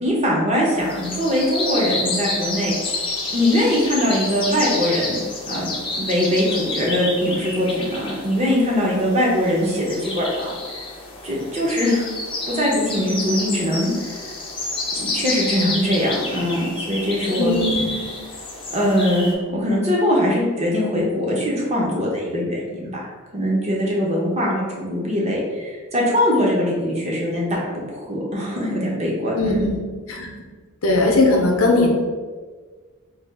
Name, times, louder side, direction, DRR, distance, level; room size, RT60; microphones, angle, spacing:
voice 1, 0.0-2.7 3.3-5.2 5.5-5.7 6.0-10.8 11.2-12.1 12.5-14.3 15.0-17.5 18.7-27.6 27.9-29.6, equal, 30° right, -3 dB, 0.6 m, -22 dB
sound 1, 0.8-19.3, left 2 dB, 25° left, 0.4 m, -29 dB
voice 2, 17.4-17.9 29.3-29.8 30.1-30.3 30.8-31.9, left 2 dB, 70° left, 1 dB, 0.6 m, -18 dB
3.3 x 2.3 x 3.4 m, 1.5 s
head